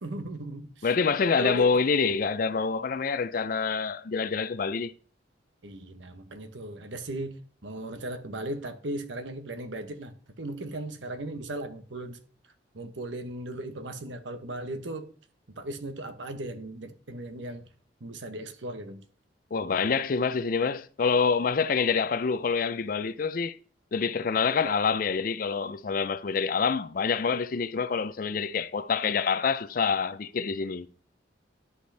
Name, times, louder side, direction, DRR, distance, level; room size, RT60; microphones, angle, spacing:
voice 1, 0.0-0.9 1.3-1.7 5.6-12.2 12.7-15.1 15.6-17.7 18.0-19.0, right 1 dB, 85° right, 1.0 m, -37 dB
voice 2, 0.8-4.9 19.5-23.6 23.9-30.9, left 5 dB, 50° left, 0.4 m, -26 dB
11.0 x 5.2 x 3.4 m
head